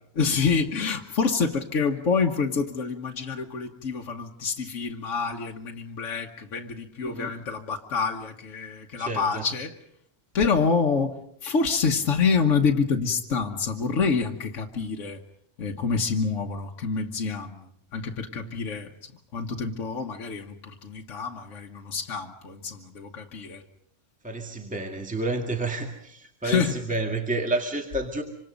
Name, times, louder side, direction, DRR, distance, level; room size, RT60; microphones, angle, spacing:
voice 1, 0.2-9.7 10.3-15.2 15.6-17.6 17.9-18.9 19.3-20.6 20.8-23.6 26.4-26.8, left 5 dB, 75° left, 1.6 m, -27 dB
voice 2, 7.0-7.3 9.0-9.5 18.4-18.6 24.2-28.2, right 2 dB, 5° right, 2.0 m, -30 dB
26.0 x 26.0 x 5.2 m
omnidirectional pair, 1.3 m